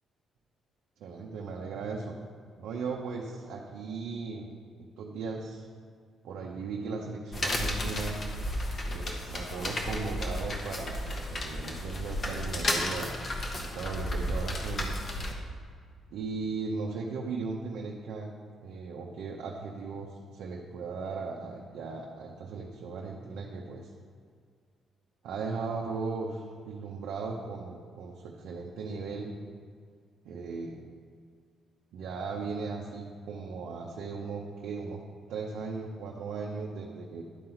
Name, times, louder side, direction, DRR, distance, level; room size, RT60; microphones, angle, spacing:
voice 1, 1.0-2.2 2.6-4.5 5.0-5.7 6.2-8.2 8.9-13.2 13.6-15.0 16.1-18.3 18.6-23.9 25.2-29.3 30.2-30.8 31.9-35.0 35.3-37.2, right 4 dB, 80° right, -2 dB, 0.7 m, -37 dB
sound 1, 7.3-15.3, left 1 dB, 40° left, 1.0 m, -33 dB
11.0 x 4.0 x 4.4 m, 2.1 s
cardioid pair, 90°, 0 cm